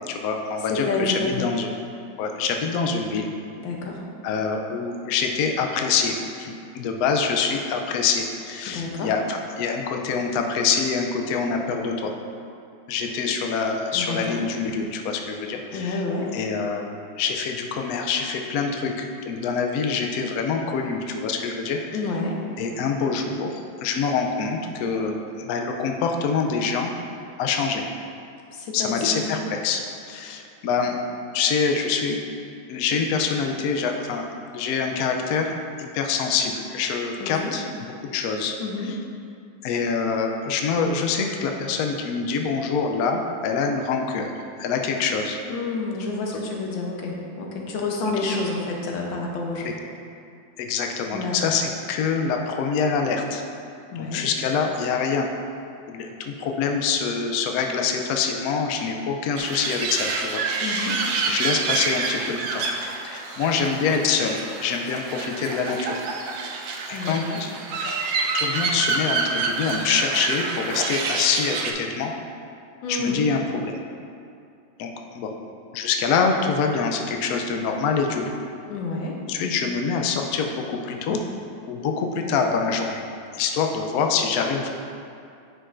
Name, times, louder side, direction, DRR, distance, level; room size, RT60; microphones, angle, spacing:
voice 1, 0.1-1.7 2.2-3.3 4.2-12.1 12.9-16.0 16.3-21.8 22.6-26.9 27.4-27.8 28.7-29.8 30.1-31.0 31.3-32.2 32.7-34.2 34.5-35.5 35.8-38.6 38.8-39.0 39.6-44.3 44.6-45.4 49.6-49.7 50.6-53.4 54.0-55.3 55.9-62.6 63.0-65.9 66.9-67.5 67.9-68.0 68.3-72.1 72.9-73.8 74.8-75.3 75.7-78.3 79.3-81.2 81.7-83.0 83.4-84.7, left 5 dB, 70° left, 3 dB, 0.9 m, -25 dB
voice 2, 0.7-1.3 3.6-4.0 8.7-9.1 13.9-14.4 15.7-16.3 21.9-22.4 28.5-29.2 37.2-37.5 38.6-38.9 45.4-49.7 51.1-51.5 53.9-54.2 60.6-61.0 66.9-67.4 72.8-73.2 78.7-79.2, left 3 dB, 90° left, 0 dB, 1.6 m, -29 dB
sound 1, 59.4-71.7, right 4 dB, 85° right, 1.4 m, -28 dB
9.6 x 5.3 x 2.5 m, 2.5 s
omnidirectional pair, 2.0 m